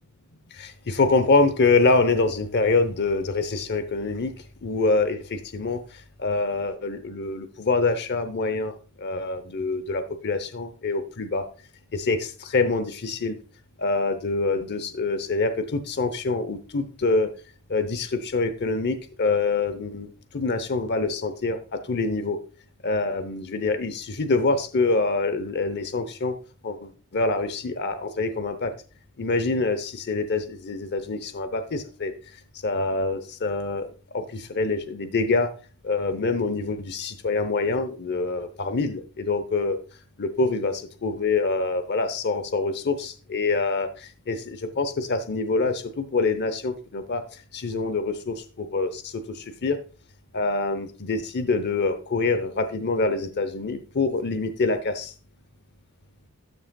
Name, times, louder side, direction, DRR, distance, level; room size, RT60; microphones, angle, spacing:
voice 1, 0.6-4.3 4.6-5.8 6.2-11.4 11.9-13.4 13.8-17.3 17.7-20.1 20.3-22.4 22.8-26.3 26.6-28.7 29.2-32.1 32.6-33.9 34.1-35.5 35.8-39.8 40.2-47.2 47.5-49.8 50.3-55.1, left 3 dB, 50° left, 10 dB, 0.8 m, -25 dB
12.5 x 6.3 x 2.3 m, 0.35 s
head